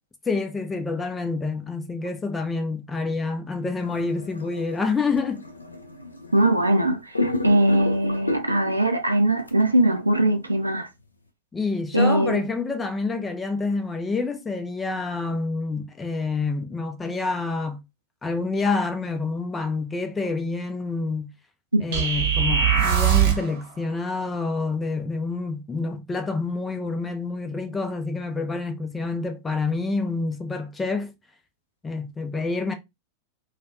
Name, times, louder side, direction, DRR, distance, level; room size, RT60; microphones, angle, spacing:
voice 1, 0.3-5.4 11.5-17.8 18.2-21.3 21.8-31.1 31.8-32.7, left 3 dB, 15° left, 0.4 m, -27 dB
sound 1, 3.8-6.8 7.2-8.9 9.5-9.6, left 1 dB, 80° left, 0.4 m, -31 dB
voice 2, 6.3-10.9 11.9-12.4 21.7-21.8, right 1 dB, 85° right, 0.4 m, -21 dB
sound 2, 21.9-23.5, right 8 dB, 50° right, 0.9 m, -20 dB
2.4 x 2.1 x 2.4 m
figure-of-eight pair, 90°, 0 cm